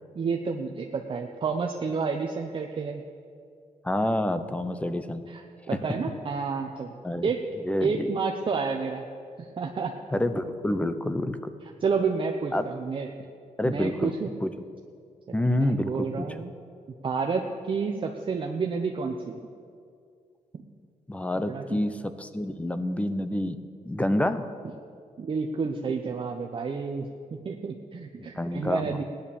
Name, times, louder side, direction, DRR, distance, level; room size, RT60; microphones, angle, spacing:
voice 1, 0.1-3.0 5.3-6.9 7.2-7.4 7.8-9.0 9.4-9.9 11.8-13.1 13.6-14.3 15.3-16.5 17.0-19.4 21.5-21.8 25.2-29.0, right 5 dB, 40° right, 3 dB, 0.9 m, -30 dB
voice 2, 3.8-5.3 7.0-7.3 7.6-7.9 10.1-11.4 12.5-12.7 13.6-14.1 14.4-14.5 15.3-16.3 21.1-21.9 22.2-23.6 23.8-24.5 28.2-29.0, left 1 dB, 10° left, 11 dB, 0.8 m, -27 dB
17.0 x 10.5 x 7.1 m, 2.4 s
wide cardioid pair, 130°, 13 cm